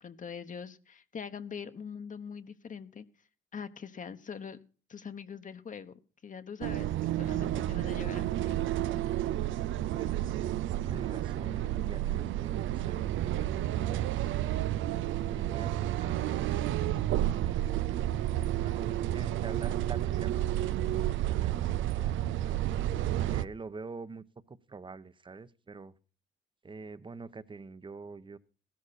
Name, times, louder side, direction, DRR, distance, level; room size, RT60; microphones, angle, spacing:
voice 1, 0.0-3.0 3.5-4.6 4.9-6.9 7.1-8.5, left 6 dB, 40° left, 1.2 m, -43 dB
sound 1, 6.6-23.4, right 13 dB, 80° right, 0.6 m, -31 dB
voice 2, 9.9-10.4 10.8-14.5 15.2-18.1 18.4-22.6 23.2-25.9 26.6-28.4, right 4 dB, 25° right, 1.0 m, -47 dB
15.5 x 13.5 x 4.2 m
cardioid pair, 90°, 20 cm